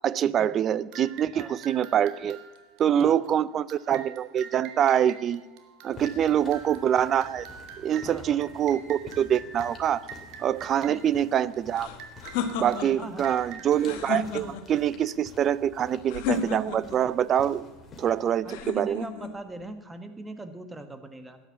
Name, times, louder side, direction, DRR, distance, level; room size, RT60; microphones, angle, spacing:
voice 1, 0.0-2.4 2.8-5.4 5.8-7.5 7.8-10.0 10.4-11.9 12.4-17.6 18.0-19.1, right 9 dB, 40° right, 19 dB, 0.5 m, -25 dB
sound 1, 0.9-15.1, right 7 dB, 60° right, 1.9 m, -47 dB
sound 2, 5.9-18.4, left 3 dB, 25° left, 2.9 m, -50 dB
voice 2, 8.0-8.4 10.9-11.0 13.0-13.4 18.4-21.4, right 2 dB, 15° right, 9 dB, 1.3 m, -41 dB
sound 3, 11.7-13.1 13.7-14.8 16.1-17.0 18.5-19.3, left 6 dB, 70° left, 1.6 m, -32 dB
13.0 x 9.9 x 7.3 m, 1.3 s
supercardioid pair, 105°, 0 cm